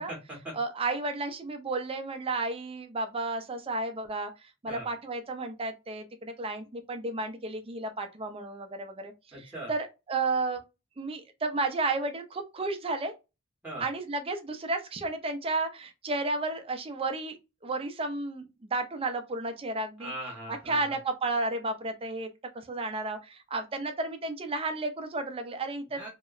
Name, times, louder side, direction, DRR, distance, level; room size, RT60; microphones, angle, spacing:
voice 1, 0.0-0.6 4.7-4.9 9.3-9.7 13.6-13.9 20.0-21.0 25.9-26.1, right 1 dB, 5° right, 0.9 m, -40 dB
voice 2, 0.5-4.3 4.6-9.1 9.4-10.6 11.0-13.1 13.8-17.4 17.6-20.1 20.7-22.3 22.5-26.0, right 3 dB, 25° right, 0.4 m, -32 dB
2.8 x 2.1 x 2.3 m
head